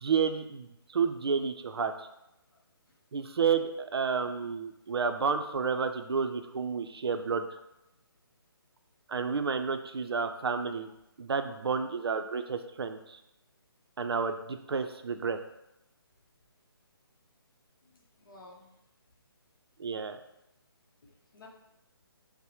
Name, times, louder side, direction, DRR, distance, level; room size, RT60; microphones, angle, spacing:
voice 1, 0.0-2.1 3.1-7.5 9.1-10.9 11.2-13.2 14.0-15.4 19.8-20.2, right 5 dB, 75° right, 8 dB, 0.4 m, -30 dB
voice 2, 17.8-18.7 21.0-21.5, left 2 dB, 55° left, -2 dB, 0.8 m, -55 dB
5.4 x 2.0 x 2.9 m, 0.87 s
hypercardioid pair, 175°, 13 cm